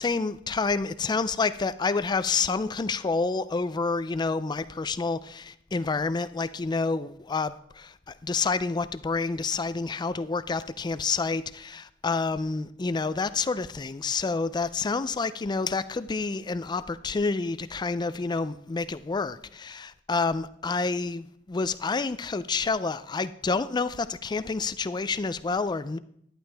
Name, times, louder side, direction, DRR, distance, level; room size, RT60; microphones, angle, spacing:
voice 1, 0.0-26.0, left 4 dB, 20° left, 14 dB, 0.4 m, -28 dB
11.5 x 10.5 x 3.4 m, 0.70 s
head